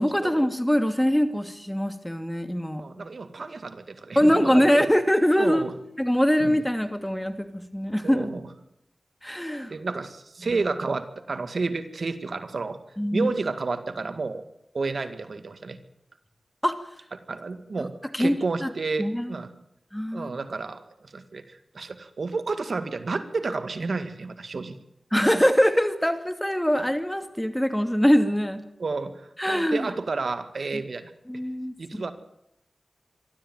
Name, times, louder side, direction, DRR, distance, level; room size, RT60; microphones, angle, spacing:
voice 1, 0.0-3.1 4.1-5.7 6.0-8.3 9.2-9.7 13.0-13.3 16.6-16.8 18.1-18.7 19.0-19.3 19.9-20.3 25.1-28.6 29.4-29.9 30.7-30.8 31.3-32.0, equal, 5° left, 8 dB, 2.6 m, -23 dB
voice 2, 2.8-4.7 5.4-5.7 6.4-6.6 8.0-8.5 9.7-12.8 13.1-14.4 14.7-15.8 17.3-19.5 20.1-24.8 28.8-31.1 31.8-32.1, right 3 dB, 70° right, 9 dB, 2.0 m, -31 dB
25.5 x 13.0 x 9.2 m, 0.80 s
wide cardioid pair, 55°, 0 cm